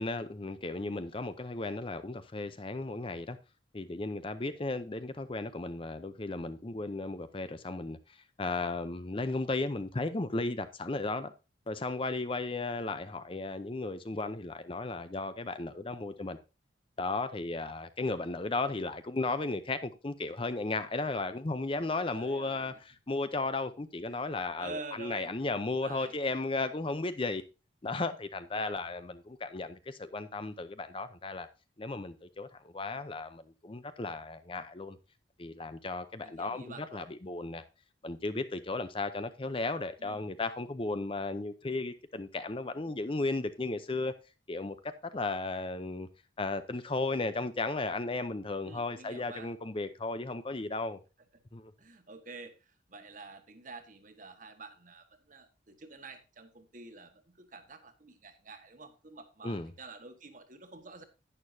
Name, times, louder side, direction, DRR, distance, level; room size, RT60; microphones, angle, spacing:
voice 1, 0.0-3.4 3.7-11.3 11.7-16.4 17.0-22.7 23.1-27.4 27.8-31.5 31.8-35.0 35.4-37.6 38.0-44.1 44.5-46.1 46.4-51.0 51.5-51.7 59.4-59.7, left 3 dB, 25° left, 0.6 m, -35 dB
voice 2, 22.1-22.8 24.1-24.2 24.6-25.4 25.6-26.2 28.5-28.8 36.2-37.1 40.0-40.3 48.6-49.5 51.8-61.0, right 3 dB, 40° right, 1.4 m, -48 dB
11.0 x 9.6 x 2.7 m
head